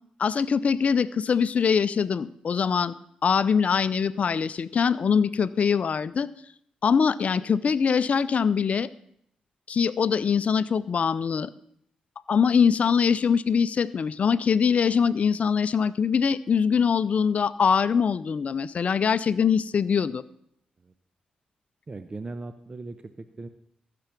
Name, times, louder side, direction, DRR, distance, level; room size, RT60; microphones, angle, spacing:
voice 1, 0.2-2.9 3.2-6.3 6.8-8.9 9.7-11.5 12.3-20.2, left 6 dB, 55° left, 18 dB, 0.5 m, -23 dB
voice 2, 21.9-23.5, right 3 dB, 35° right, 10 dB, 0.7 m, -38 dB
14.5 x 6.8 x 5.9 m, 0.71 s
supercardioid pair, 45°, 3 cm